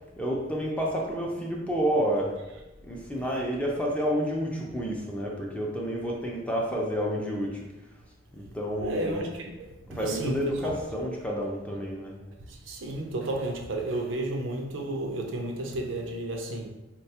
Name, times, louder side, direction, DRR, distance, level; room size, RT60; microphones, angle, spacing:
voice 1, 0.2-2.3 2.8-7.7 8.3-9.3 9.9-12.2, equal, 5° left, 0.5 m, -29 dB
voice 2, 8.8-10.8 12.5-16.7, right 1 dB, 80° right, 0.5 m, -32 dB
3.9 x 2.2 x 2.8 m
head